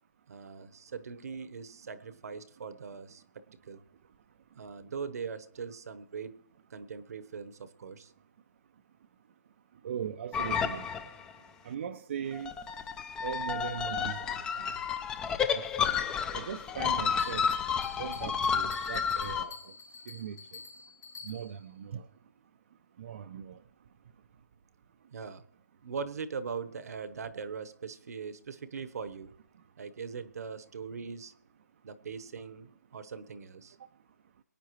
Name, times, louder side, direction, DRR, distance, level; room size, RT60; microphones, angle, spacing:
voice 1, 0.3-3.2 3.7-3.8 4.5-6.4 6.7-8.1 25.1-25.4 25.8-29.3 29.8-31.3 31.8-33.8, right 5 dB, 55° right, 13 dB, 1.1 m, -41 dB
voice 2, 9.8-10.9 11.6-12.5 13.2-14.8 15.5-15.6 16.3-17.4 18.0-19.7 20.1-20.6 21.2-22.1 23.0-23.6, right 8 dB, 40° right, 8 dB, 0.5 m, -39 dB
sound 1, 10.3-11.3 12.3-19.4, left 7 dB, 5° left, 0.4 m, -31 dB
Bell, 17.2-21.7, left 4 dB, 70° left, 3.5 m, -49 dB
23.0 x 9.3 x 3.1 m, 0.71 s
hypercardioid pair, 160°, 10 cm